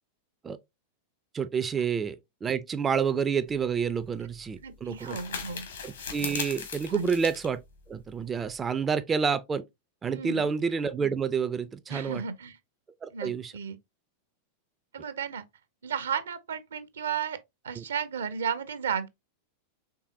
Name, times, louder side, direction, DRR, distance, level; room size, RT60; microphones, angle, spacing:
voice 1, 1.3-5.2 5.8-7.6 7.9-9.6 10.0-12.2 13.0-13.5 17.8-17.9, right 6 dB, 20° right, 0.3 m, -29 dB
sound 1, 3.5-8.7, left 6 dB, 70° left, 1.3 m, -40 dB
voice 2, 4.6-5.7 6.9-7.1 10.1-10.5 11.9-12.6 13.1-13.8 14.9-15.4 15.8-17.4 17.6-19.1, right 7 dB, 65° right, 0.5 m, -33 dB
4.7 x 3.4 x 2.7 m
figure-of-eight pair, 90°, 0 cm